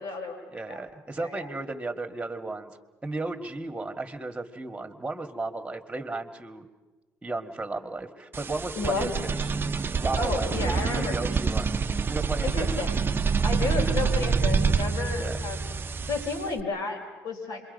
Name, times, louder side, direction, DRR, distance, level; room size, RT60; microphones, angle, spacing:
voice 1, 0.0-0.4 0.7-0.8 1.2-1.5 8.7-9.1 10.1-11.2 12.4-13.0 13.4-15.6 16.1-17.6, left 3 dB, 65° left, 2 dB, 4.3 m, -31 dB
voice 2, 0.5-2.7 3.0-6.7 7.2-9.5 10.0-11.7 12.1-12.8 15.2-15.4, right 2 dB, 15° right, 6 dB, 2.0 m, -34 dB
sound 1, 8.3-16.6, right 5 dB, 30° right, 0.7 m, -27 dB
27.0 x 24.0 x 5.4 m, 1.2 s
supercardioid pair, 75°, 7 cm